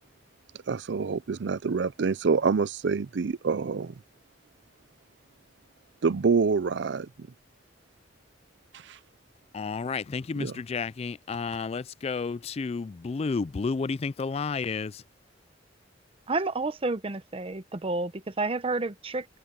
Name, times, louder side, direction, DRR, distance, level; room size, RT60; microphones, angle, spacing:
voice 1, 0.7-4.0 6.0-7.1 8.9-9.0 10.4-10.6, right 5 dB, 70° right, 0.5 m, -26 dB
voice 2, 9.5-15.0, left 4 dB, 35° left, 0.3 m, -31 dB
voice 3, 16.3-19.3, right 3 dB, 30° right, 0.8 m, -30 dB
head